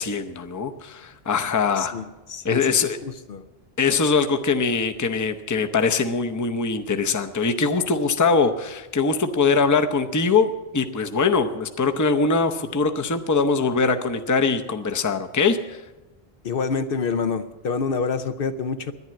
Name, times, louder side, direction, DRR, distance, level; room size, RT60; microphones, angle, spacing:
voice 1, 0.0-1.9 2.4-3.0 3.8-15.8, left 4 dB, 20° left, 7 dB, 0.6 m, -22 dB
voice 2, 1.8-3.5 16.4-18.9, left 5 dB, 65° left, 10 dB, 0.8 m, -27 dB
11.0 x 10.5 x 8.5 m, 1.1 s
omnidirectional pair, 1.1 m